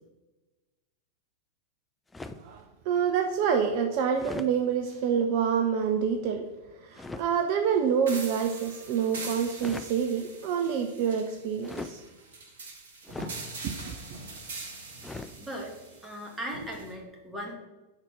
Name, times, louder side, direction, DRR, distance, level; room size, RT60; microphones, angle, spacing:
sound 1, 2.1-2.5 4.1-4.5 6.9-7.3 9.5-9.9 11.6-12.0 13.0-13.4 15.0-15.4, left 3 dB, 10° left, 0.4 m, -39 dB
voice 1, 2.4-6.4 6.8-12.0 13.6-14.0, right 7 dB, 45° right, 4 dB, 0.6 m, -27 dB
sound 2, 8.1-16.9, right 3 dB, 65° right, 1.4 m, -43 dB
voice 2, 15.4-15.8 16.0-17.6, equal, 10° right, -1 dB, 1.8 m, -38 dB
6.1 x 4.1 x 5.3 m, 1.1 s
figure-of-eight pair, 90°, 0 cm